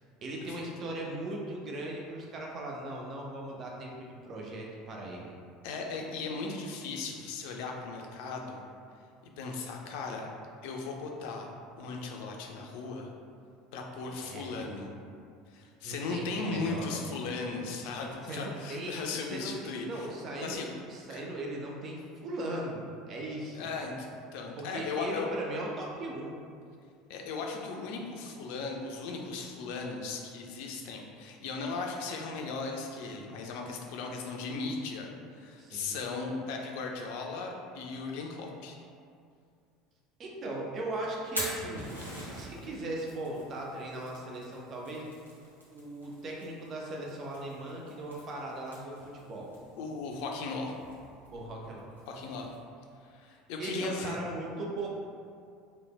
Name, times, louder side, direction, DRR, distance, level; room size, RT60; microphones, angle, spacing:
voice 1, 0.2-5.3 14.0-14.7 15.8-17.0 17.8-17.9 18.2-19.5 19.8-20.6 20.9-23.7 24.6-26.3 35.6-36.0 40.2-41.9 42.3-45.0 45.7-49.5 51.3-51.8 53.6-54.9, right 1 dB, 40° right, -2 dB, 0.4 m, -38 dB
voice 2, 5.6-8.6 9.4-10.3 10.6-11.5 11.8-13.1 13.7-14.9 15.5-20.1 20.4-20.7 21.1-21.2 23.5-25.3 27.1-38.8 49.8-50.7 52.1-52.5 53.0-54.2, left 4 dB, 60° left, 1 dB, 0.3 m, -37 dB
Fire, 41.1-52.5, equal, 90° right, 0.6 m, -45 dB
3.2 x 2.0 x 2.2 m, 2.3 s
figure-of-eight pair, 70°, 0 cm